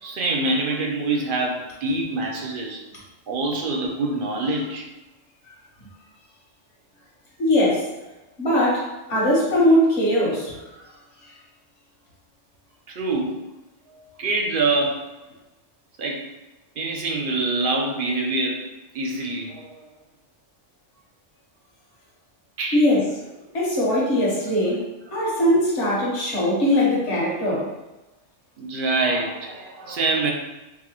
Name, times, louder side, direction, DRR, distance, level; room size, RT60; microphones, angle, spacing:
voice 1, 0.0-2.8 3.3-4.9 12.9-13.5 13.9-15.1 16.0-16.3 16.8-18.7 18.9-19.9 22.6-22.9 28.6-30.3, right 2 dB, 55° right, 0 dB, 0.7 m, -25 dB
voice 2, 7.4-7.9 8.4-10.5 22.7-23.0 23.5-24.8 25.1-27.7, left 1 dB, 65° left, -5 dB, 1.4 m, -20 dB
4.6 x 2.2 x 2.9 m, 1.1 s
omnidirectional pair, 1.3 m